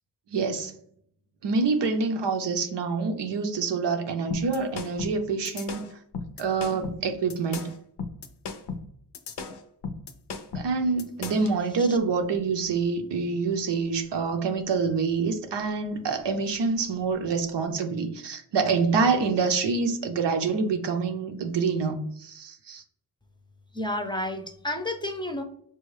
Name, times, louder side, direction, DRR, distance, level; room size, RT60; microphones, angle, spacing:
voice 1, 0.3-0.7 1.4-5.8 6.4-7.6 10.5-22.8, right 4 dB, 85° right, 0.6 m, -26 dB
sound 1, 4.3-11.5, left 4 dB, 70° left, 0.6 m, -36 dB
voice 2, 23.7-25.4, left 1 dB, 10° left, 0.6 m, -31 dB
5.4 x 2.3 x 3.2 m
cardioid pair, 45°, 41 cm